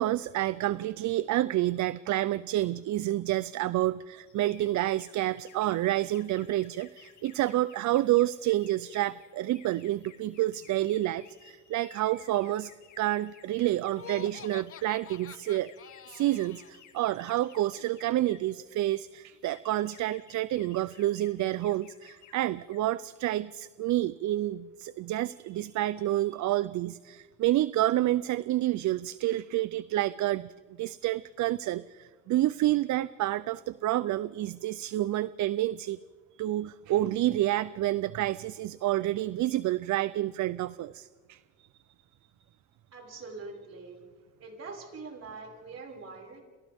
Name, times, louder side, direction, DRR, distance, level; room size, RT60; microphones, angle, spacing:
voice 1, 0.0-12.7 13.0-15.7 16.1-30.5 30.8-36.0 36.3-41.7, right 15 dB, 70° right, 17 dB, 0.5 m, -29 dB
sound 1, 4.3-18.6 19.2-22.4 22.6-22.9, left 8 dB, 70° left, 2.4 m, -57 dB
Laughter, 13.9-16.7, left 9 dB, 45° left, 0.8 m, -47 dB
voice 2, 42.9-44.0 44.4-46.4, right 3 dB, 55° right, 0 dB, 5.8 m, -43 dB
30.0 x 26.5 x 3.6 m, 1.5 s
cardioid pair, 90°, 30 cm